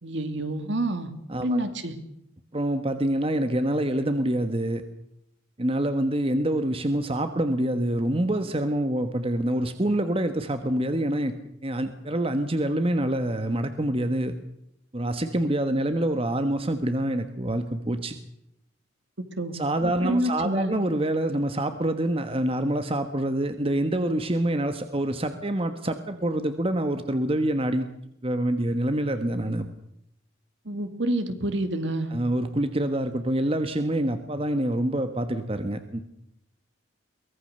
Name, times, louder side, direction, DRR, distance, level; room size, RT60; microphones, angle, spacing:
voice 1, 0.0-1.1 1.4-2.0 19.3-19.6 20.0-20.7 30.7-32.1, right 1 dB, 60° right, 9 dB, 2.4 m, -27 dB
voice 2, 1.3-1.6 2.5-4.8 5.6-11.3 11.6-14.3 14.9-18.1 19.5-27.9 28.2-29.7 32.1-36.0, right 1 dB, 30° right, 9 dB, 1.3 m, -26 dB
23.5 x 18.5 x 6.7 m, 0.81 s
head